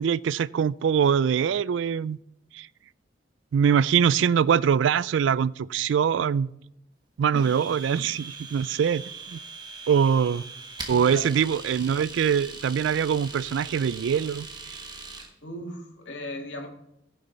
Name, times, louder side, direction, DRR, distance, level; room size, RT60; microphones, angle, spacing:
voice 1, 0.0-2.2 2.5-2.7 3.5-6.5 7.2-9.0 9.3-9.4 9.9-10.4 10.9-14.5 14.7-14.8, right 7 dB, 75° right, 21 dB, 0.3 m, -23 dB
Domestic sounds home sounds, 7.4-15.3, right 4 dB, 20° right, 1.2 m, -41 dB
voice 2, 10.9-11.2 15.4-16.7, left 1 dB, 70° left, 1 dB, 2.2 m, -37 dB
15.5 x 6.6 x 4.0 m, 0.82 s
head